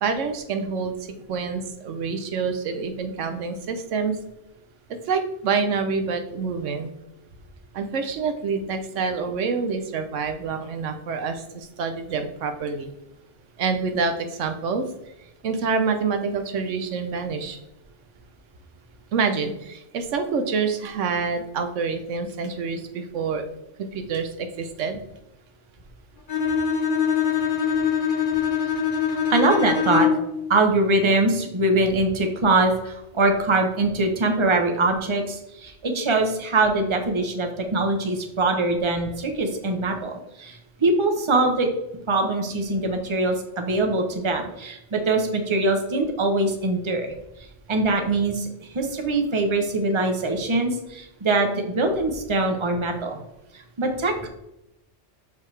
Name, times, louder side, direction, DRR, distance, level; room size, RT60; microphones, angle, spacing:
voice 1, 0.0-4.2 4.9-6.9 7.7-12.9 13.6-15.1 15.4-17.6 19.1-23.5 23.9-25.0, right 5 dB, 85° right, 7 dB, 1.1 m, -27 dB
Bowed string instrument, 26.3-30.4, left 7 dB, 50° left, 0.9 m, -23 dB
voice 2, 29.1-30.1 30.5-41.7 42.1-47.1 47.7-53.2 53.5-54.3, right 2 dB, 25° right, 4 dB, 0.9 m, -23 dB
6.5 x 5.3 x 3.3 m, 0.86 s
omnidirectional pair, 1.2 m